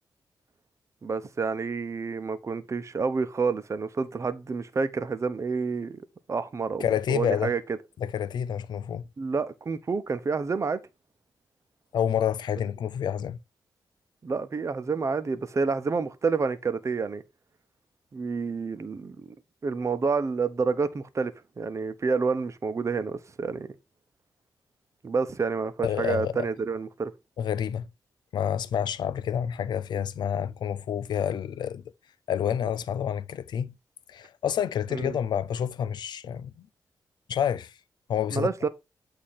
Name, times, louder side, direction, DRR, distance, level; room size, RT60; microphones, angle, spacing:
voice 1, 1.0-6.0 6.3-7.6 9.2-10.8 14.2-17.2 18.1-19.3 19.6-21.3 21.6-23.7 25.0-27.1 34.9-35.2 38.3-38.7, right 4 dB, 40° right, 0.8 m, -29 dB
voice 2, 6.8-7.5 8.0-9.0 11.9-13.4 25.8-26.5 27.4-27.8 28.3-31.8 32.3-33.7 34.1-36.5 37.3-37.7 38.1-38.5, left 9 dB, 80° left, 0.5 m, -28 dB
8.5 x 2.9 x 5.6 m
cardioid pair, 70°, 7 cm